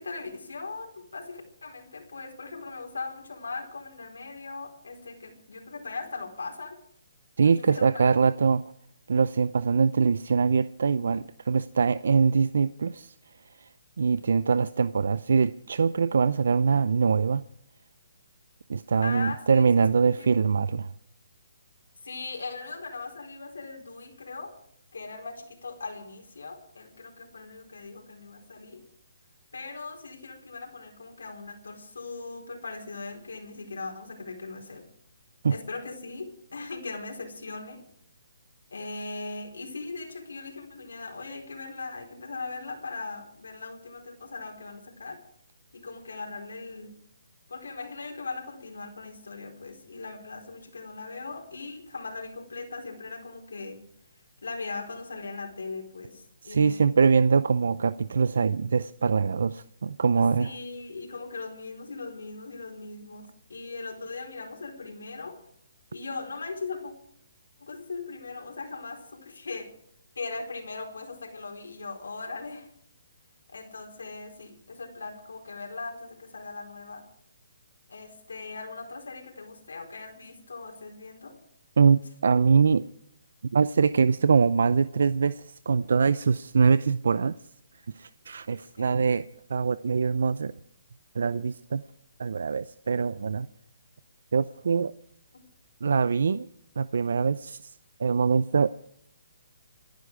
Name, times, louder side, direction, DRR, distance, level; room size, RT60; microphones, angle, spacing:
voice 1, 0.0-6.8 7.4-8.1 19.0-19.8 20.2-20.4 22.0-24.5 24.9-28.8 29.5-34.8 35.5-37.8 38.7-45.2 45.7-46.9 47.5-53.8 54.4-56.9 60.2-65.4 65.9-66.9 67.6-69.7 70.1-72.7 73.5-77.0 77.9-81.4 88.8-88.9 95.3-95.4, left 3 dB, 85° left, 2 dB, 4.4 m, -39 dB
voice 2, 7.4-8.6 9.1-13.1 13.6-13.7 14.0-17.4 18.7-20.9 35.4-35.5 56.4-60.5 81.8-82.8 83.5-87.3 87.9-89.2 89.5-90.5 91.1-91.8 92.2-93.5 94.3-94.9 95.8-96.5 96.8-97.6 98.0-98.7, right 5 dB, 70° right, 16 dB, 0.5 m, -23 dB
27.0 x 10.5 x 4.7 m, 0.68 s
hypercardioid pair, 160°, 0 cm